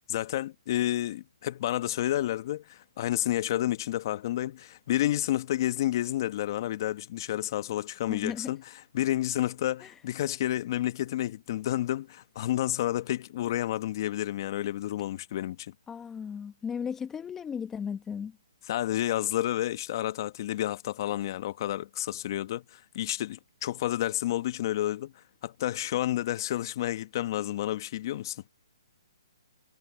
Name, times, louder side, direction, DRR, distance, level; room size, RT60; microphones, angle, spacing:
voice 1, 0.1-8.6 8.9-15.7 18.7-28.4, left 13 dB, 45° left, 1.1 m, -30 dB
voice 2, 8.1-8.5 9.8-9.9 15.9-18.4, left 7 dB, 10° left, 1.2 m, -35 dB
hypercardioid pair, 145°, 3 cm